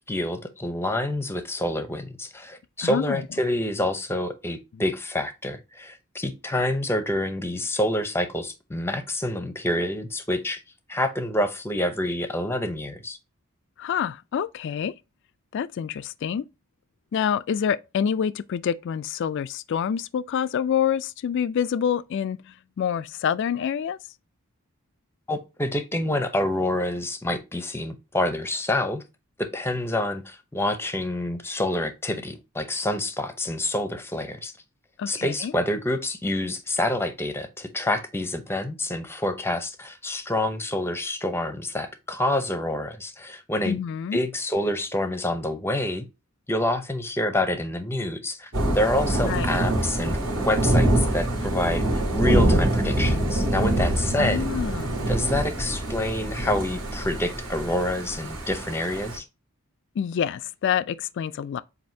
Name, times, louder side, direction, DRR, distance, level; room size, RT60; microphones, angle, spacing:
voice 1, 0.1-10.6 10.9-13.2 25.3-29.0 29.4-34.5 35.1-43.8 44.1-46.0 46.5-51.9 52.1-54.4 55.1-59.2, left 1 dB, 10° left, 0.7 m, -27 dB
voice 2, 2.8-3.2 4.7-4.8 13.8-14.9 15.5-16.5 17.1-24.0 35.0-35.5 43.6-44.2 49.2-49.5 54.2-55.1 60.0-61.6, left 8 dB, 55° left, 0.3 m, -27 dB
Thunder / Rain, 48.5-59.2, right 1 dB, 65° right, 2.1 m, -25 dB
7.5 x 2.6 x 2.7 m
head